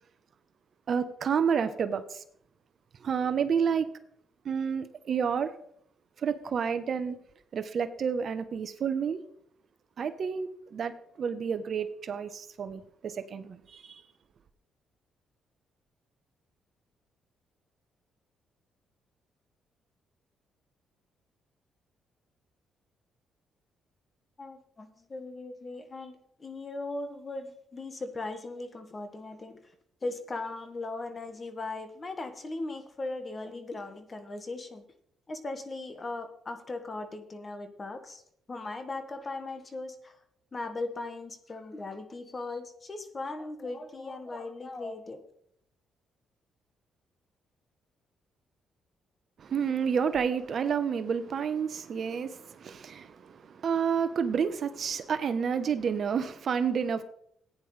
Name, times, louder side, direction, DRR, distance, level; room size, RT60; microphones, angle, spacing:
voice 1, 0.9-2.2 3.0-3.9 4.4-5.5 6.2-7.2 7.5-9.2 10.0-14.0 49.4-57.0, right 6 dB, 55° right, 0.9 m, -30 dB
voice 2, 24.4-29.6 30.0-34.8 35.3-38.2 38.5-40.2 40.5-45.2, left 2 dB, 30° left, 1.5 m, -38 dB
15.0 x 9.6 x 3.3 m
cardioid pair, 90°, 0 cm